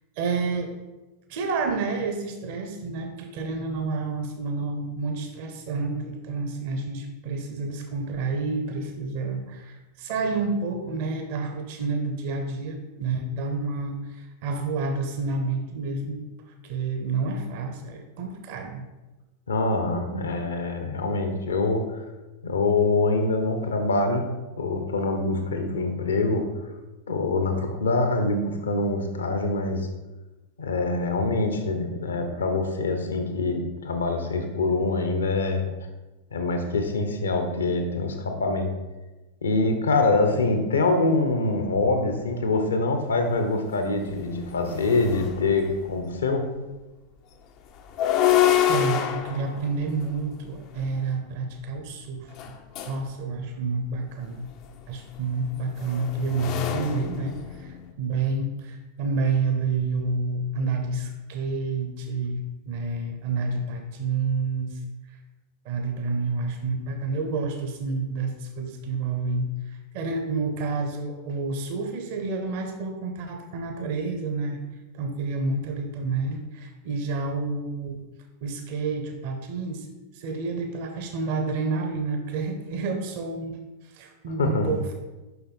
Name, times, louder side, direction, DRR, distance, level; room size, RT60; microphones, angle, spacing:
voice 1, 0.2-0.7 1.3-16.2 16.6-18.8 48.7-52.3 52.8-54.5 54.9-64.8 65.1-65.2 65.6-74.6 74.9-78.0 78.4-79.9 80.1-83.6 83.8-84.9, right 3 dB, 50° right, 5 dB, 0.9 m, -29 dB
voice 2, 19.5-22.0 22.4-24.3 24.6-26.4 27.1-29.9 30.6-35.7 36.3-38.7 39.4-46.4 84.4-84.7, left 3 dB, 70° left, 5 dB, 1.0 m, -24 dB
sound 1, 43.4-43.5 44.0-45.9 47.8-51.0 52.3-53.1 54.5-57.9, left 11 dB, 40° left, 0.6 m, -27 dB
7.0 x 5.6 x 4.2 m, 1.1 s
figure-of-eight pair, 90°, 0 cm